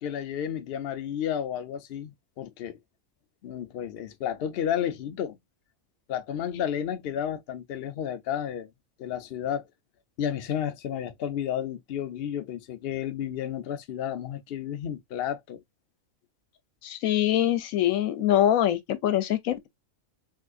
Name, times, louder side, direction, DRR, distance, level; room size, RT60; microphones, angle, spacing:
voice 1, 0.0-2.8 3.4-5.4 6.1-8.7 9.0-9.7 10.2-15.6, left 9 dB, 60° left, 0.7 m, -32 dB
voice 2, 16.8-19.7, left 11 dB, 85° left, 1.0 m, -24 dB
3.6 x 3.0 x 2.5 m
omnidirectional pair, 1.4 m